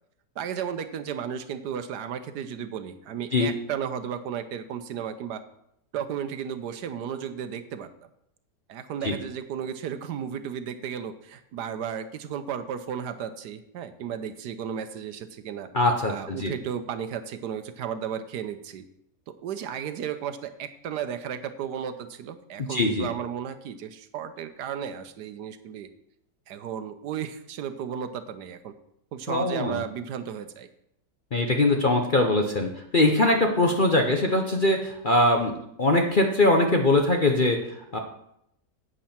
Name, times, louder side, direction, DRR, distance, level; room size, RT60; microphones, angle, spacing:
voice 1, 0.4-5.4 5.9-7.9 8.7-15.7 16.1-18.8 19.3-25.9 26.5-28.7 29.1-30.7 33.2-33.5, right 8 dB, 75° right, 10 dB, 1.3 m, -34 dB
voice 2, 15.7-16.5 22.7-23.1 29.3-29.8 31.3-37.6 37.9-38.0, left 2 dB, 40° left, 3 dB, 0.8 m, -22 dB
11.0 x 8.5 x 4.4 m, 0.76 s
omnidirectional pair, 1.9 m